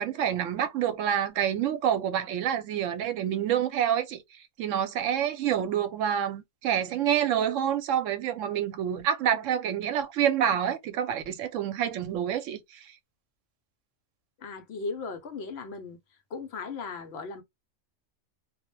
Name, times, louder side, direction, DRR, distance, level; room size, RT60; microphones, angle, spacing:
voice 1, 0.0-4.2 4.6-12.6, right 9 dB, 80° right, 0.9 m, -27 dB
voice 2, 14.4-16.0 16.3-17.4, left 4 dB, 65° left, 0.8 m, -37 dB
2.2 x 2.1 x 3.0 m
omnidirectional pair, 1.3 m